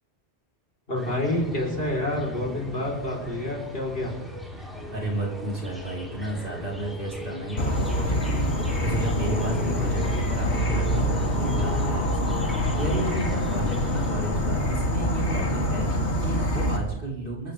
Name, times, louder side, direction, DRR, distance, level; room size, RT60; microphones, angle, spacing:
voice 1, 0.9-4.1, left 1 dB, 55° left, 0 dB, 4.3 m, -28 dB
sound 1, 1.0-14.2, left 1 dB, ahead, 4.0 m, -39 dB
voice 2, 4.6-17.5, right 1 dB, 50° right, -3 dB, 4.3 m, -32 dB
Insect / Frog, 7.6-16.8, equal, 70° left, 2.4 m, -25 dB
26.5 x 14.5 x 3.4 m, 0.92 s
omnidirectional pair, 1.2 m